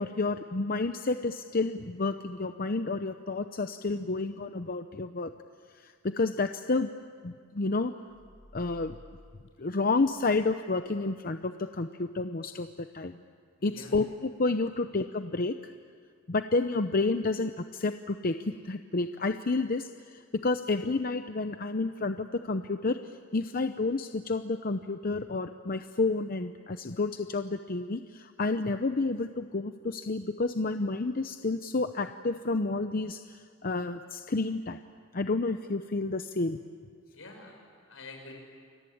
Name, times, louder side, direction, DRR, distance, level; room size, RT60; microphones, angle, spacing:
voice 1, 0.0-5.3 5.7-6.9 7.2-7.9 8.5-8.9 9.6-12.7 12.9-13.1 13.6-15.6 16.3-34.8 35.1-36.6, left 3 dB, 45° left, 8 dB, 0.8 m, -30 dB
sound 1, 8.1-11.1, left 1 dB, 55° right, 7.7 m, -55 dB
voice 2, 13.6-13.9 37.1-38.3, left 3 dB, 75° left, 2 dB, 7.1 m, -47 dB
29.5 x 22.5 x 8.6 m, 2.1 s
head